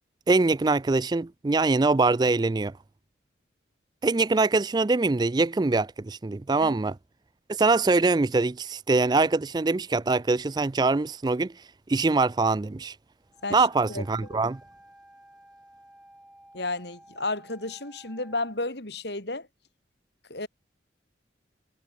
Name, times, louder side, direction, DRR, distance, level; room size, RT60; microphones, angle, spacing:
voice 1, 0.3-2.7 4.0-6.9 7.5-11.5 11.9-12.9 13.5-14.6, right 3 dB, 20° right, 0.3 m, -23 dB
Wind instrument woodwind instrument, 13.3-18.6, right 1 dB, 5° right, 6.9 m, -54 dB
voice 2, 13.4-14.1 16.5-19.5 20.3-20.5, left 2 dB, 60° left, 4.0 m, -32 dB
head